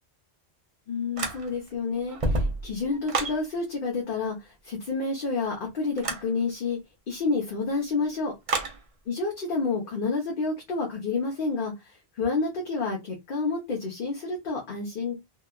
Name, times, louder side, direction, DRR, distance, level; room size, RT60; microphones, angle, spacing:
voice 1, 0.9-6.8 7.1-8.3 9.1-11.7 12.2-15.1, left 4 dB, 55° left, 0.9 m, -29 dB
sound 1, 1.2-1.7 2.1-3.4 6.0-6.3 8.5-8.8, right 2 dB, 40° right, 0.5 m, -28 dB
2.9 x 2.2 x 2.2 m
omnidirectional pair, 1.1 m